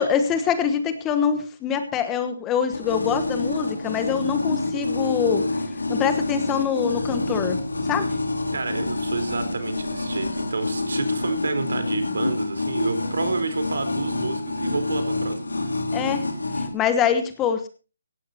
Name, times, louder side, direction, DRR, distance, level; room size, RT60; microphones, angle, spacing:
voice 1, 0.0-5.5 5.9-7.6 7.9-8.1 15.9-16.3 16.6-17.7, left 7 dB, 15° left, 10 dB, 1.2 m, -24 dB
sound 1, 2.7-16.7, left 2 dB, 90° left, 4.1 m, -27 dB
voice 2, 8.5-15.7, right 3 dB, 70° right, 9 dB, 4.1 m, -29 dB
17.0 x 16.0 x 2.9 m, 0.33 s
hypercardioid pair, 160°, 0 cm